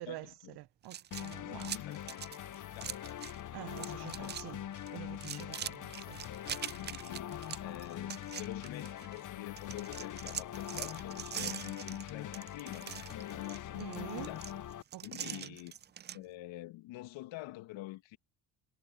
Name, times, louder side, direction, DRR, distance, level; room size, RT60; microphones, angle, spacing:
voice 1, 0.1-0.6 1.4-3.0 3.5-4.3 5.5-6.2 6.7-14.5 15.0-15.7 16.1-18.2, left 17 dB, 70° left, 1.9 m, -47 dB
voice 2, 0.6-1.7 3.5-4.6 4.9-6.2 13.8-14.3 14.9-15.6, right 17 dB, 55° right, 0.7 m, -47 dB
sound 1, 0.8-3.4 3.7-4.5 4.7-9.2 9.6-16.2, right 9 dB, 25° right, 0.4 m, -43 dB
sound 2, 1.1-14.8, left 11 dB, 40° left, 0.8 m, -43 dB
hypercardioid pair, 60°, 47 cm